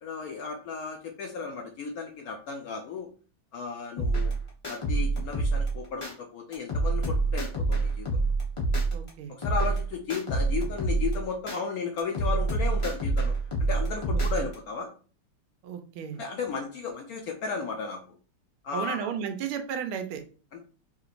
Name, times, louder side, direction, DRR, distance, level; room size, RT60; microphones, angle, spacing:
voice 1, 0.0-3.1 3.5-4.3 4.7-8.3 9.3-13.3 13.7-14.9 16.2-18.0 18.6-19.1 20.5-20.6, left 5 dB, 90° left, 2 dB, 0.8 m, -34 dB
sound 1, 4.0-6.1 6.5-9.1 9.4-11.6 12.0-14.5, right 3 dB, 45° left, 0.3 m, -27 dB
voice 2, 8.9-9.3 14.1-14.2 15.6-16.2 18.7-20.2, right 7 dB, 85° right, 6 dB, 1.5 m, -33 dB
5.1 x 2.9 x 2.5 m, 0.39 s
omnidirectional pair, 2.3 m